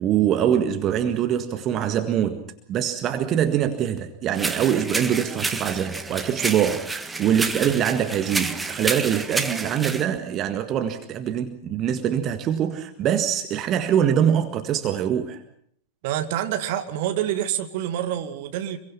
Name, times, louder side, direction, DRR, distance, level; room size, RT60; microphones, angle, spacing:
voice 1, 0.0-15.4, right 9 dB, 30° right, 8 dB, 1.7 m, -24 dB
sound 1, 4.3-10.0, right 3 dB, 10° right, 1.6 m, -29 dB
voice 2, 16.0-18.8, right 11 dB, 50° right, 8 dB, 2.1 m, -27 dB
26.5 x 23.0 x 5.8 m, 0.64 s
figure-of-eight pair, 90°, 0 cm